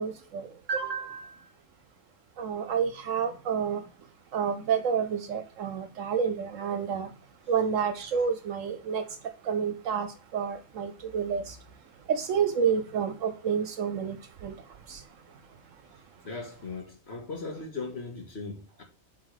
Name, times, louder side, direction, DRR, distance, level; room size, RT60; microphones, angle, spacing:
voice 1, 0.0-1.3 2.4-3.8 4.3-7.1 7.5-9.0 9.5-11.6 12.1-14.2 14.4-14.5 14.9-15.0, right 7 dB, 75° right, 1.1 m, -29 dB
voice 2, 16.2-18.8, left 3 dB, 50° left, 2.0 m, -38 dB
7.5 x 3.8 x 4.8 m
omnidirectional pair, 1.4 m